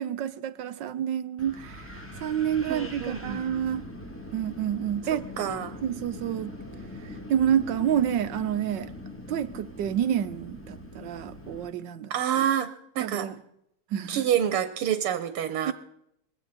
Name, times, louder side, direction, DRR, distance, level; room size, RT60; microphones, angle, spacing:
voice 1, 0.0-3.9 4.3-5.2 5.8-6.5 7.0-8.9 9.3-12.1 13.0-13.3 13.9-14.3 15.6-15.7, right 9 dB, 65° right, 12 dB, 1.3 m, -29 dB
Wind, 1.4-11.7, left 1 dB, 5° left, 1.6 m, -42 dB
voice 2, 2.7-3.4 5.4-5.8 12.1-13.3 14.1-15.7, right 10 dB, 90° right, 11 dB, 1.9 m, -27 dB
20.5 x 16.5 x 4.2 m, 0.76 s
omnidirectional pair, 2.4 m